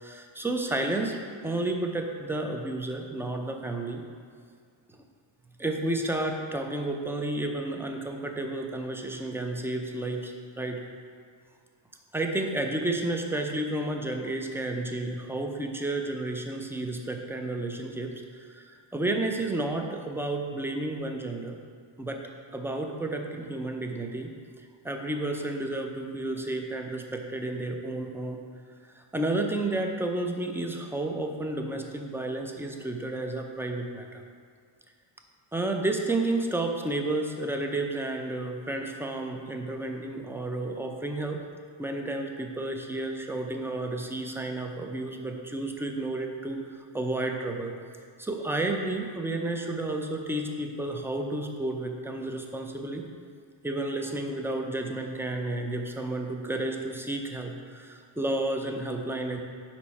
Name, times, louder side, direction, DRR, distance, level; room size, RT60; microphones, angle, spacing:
voice 1, 0.0-4.0 5.6-10.8 12.1-18.1 18.4-21.6 22.0-22.2 22.5-24.3 24.8-28.4 28.8-34.2 35.5-41.4 41.8-46.6 46.9-47.7 48.2-53.1 53.6-59.4, right 2 dB, 5° right, 3 dB, 0.5 m, -31 dB
5.4 x 4.4 x 4.2 m, 2.1 s
cardioid pair, 85°, 48 cm